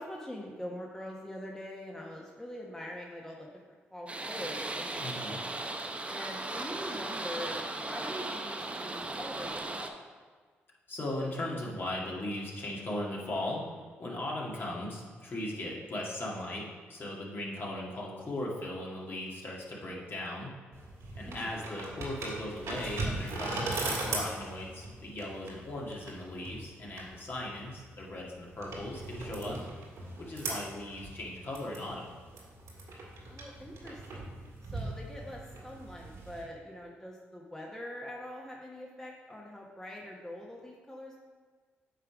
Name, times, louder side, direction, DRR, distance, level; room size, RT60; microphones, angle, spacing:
voice 1, 0.0-3.5 3.9-5.4 6.1-9.9 21.3-21.6 33.3-34.2 34.6-41.2, left 1 dB, 10° left, -2 dB, 1.1 m, -43 dB
sound 1, 4.1-9.9, right 2 dB, 25° right, 0.7 m, -37 dB
voice 2, 5.0-5.4 10.9-13.6 14.0-16.6 16.9-20.5 21.2-29.6 30.2-32.1, left 1 dB, 45° left, -3 dB, 1.9 m, -38 dB
sound 2, 20.7-36.4, right 2 dB, 70° right, 1.8 m, -39 dB
8.8 x 3.4 x 5.0 m, 1.5 s
supercardioid pair, 55°, 5 cm